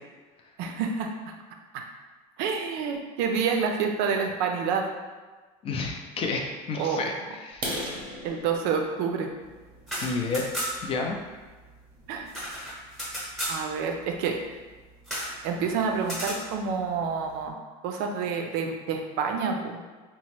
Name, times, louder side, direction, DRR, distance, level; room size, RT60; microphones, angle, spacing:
voice 1, 0.6-1.1 2.4-4.8 6.7-7.0 8.2-9.3 12.1-12.3 13.5-14.4 15.4-17.6 17.8-19.8, right 6 dB, 65° right, 3 dB, 0.4 m, -28 dB
voice 2, 5.6-7.7 10.0-10.4 10.8-11.2, left 4 dB, 35° left, 2 dB, 0.4 m, -30 dB
sound 1, 7.5-11.3 11.8-12.0 12.4-12.5 13.0-13.1 13.4-13.5 14.0-14.1 14.3-14.8, equal, 25° right, 0.7 m, -38 dB
sound 2, 9.7-11.0 11.2-11.3 11.6-13.6 15.0-15.4 16.0-16.4, equal, ahead, 0.8 m, -33 dB
2.9 x 2.0 x 2.9 m, 1.3 s
supercardioid pair, 125°, 18 cm